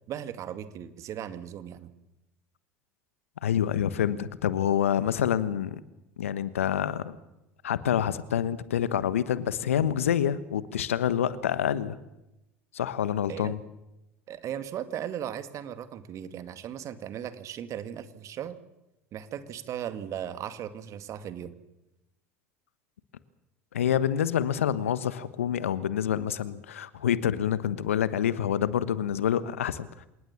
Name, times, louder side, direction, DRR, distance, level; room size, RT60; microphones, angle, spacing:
voice 1, 0.1-1.9 13.3-13.5 14.3-18.6 19.1-21.5, right 10 dB, 45° right, 11 dB, 2.0 m, -37 dB
voice 2, 3.4-5.8 6.2-7.2 7.6-12.0 12.7-13.6 23.7-29.9, left 9 dB, 80° left, 15 dB, 1.2 m, -27 dB
27.0 x 19.0 x 7.3 m, 0.94 s
hypercardioid pair, 70°, 7 cm